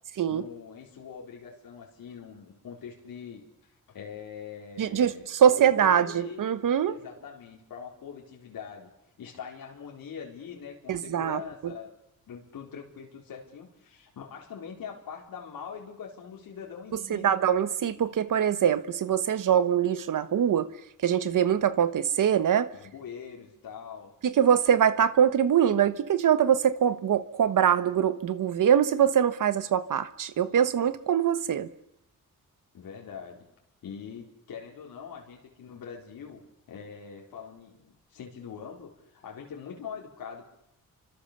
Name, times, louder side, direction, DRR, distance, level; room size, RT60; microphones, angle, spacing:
voice 1, 0.3-3.4 3.9-6.4 6.9-8.9 9.2-11.9 12.3-17.4 22.7-24.1 32.7-33.4 33.8-36.4 36.7-40.4, left 7 dB, 75° left, 4.3 m, -43 dB
voice 2, 4.8-7.0 10.9-11.4 17.1-20.7 21.0-22.7 24.2-31.7, right 9 dB, 60° right, 1.2 m, -23 dB
30.0 x 25.5 x 6.8 m
wide cardioid pair, 155°, 35 cm